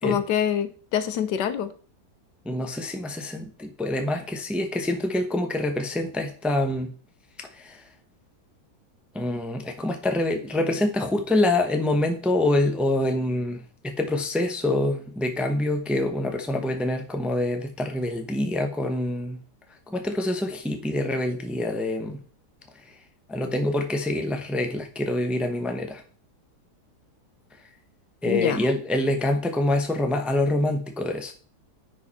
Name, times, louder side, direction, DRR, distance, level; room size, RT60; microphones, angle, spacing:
voice 1, 0.0-1.7 28.2-28.6, left 9 dB, 90° left, 11 dB, 1.4 m, -25 dB
voice 2, 2.4-6.9 7.5-7.8 9.1-19.4 19.9-22.2 23.3-26.0 28.2-31.3, left 1 dB, ahead, 5 dB, 0.6 m, -26 dB
10.0 x 4.8 x 4.2 m, 0.41 s
omnidirectional pair, 1.8 m